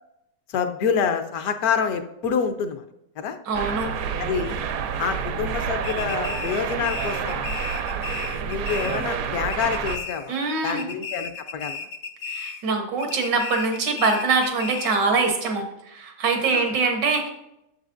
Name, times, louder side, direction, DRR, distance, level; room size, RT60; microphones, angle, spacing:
voice 1, 0.5-2.8 3.2-3.4 4.2-4.6 5.0-7.5 8.4-10.4 10.6-11.8 16.4-16.7, left 6 dB, 70° left, 8 dB, 1.0 m, -27 dB
sound 1, 3.5-10.0, right 7 dB, 70° right, 0.9 m, -29 dB
voice 2, 3.5-3.9 10.3-10.9 12.3-15.7 15.9-17.3, right 4 dB, 90° right, 4 dB, 1.8 m, -23 dB
sound 2, 5.8-9.2 9.5-10.4 10.6-12.7 13.0-15.1, left 5 dB, 90° left, 1.4 m, -35 dB
8.1 x 6.8 x 2.5 m, 0.83 s
omnidirectional pair, 1.9 m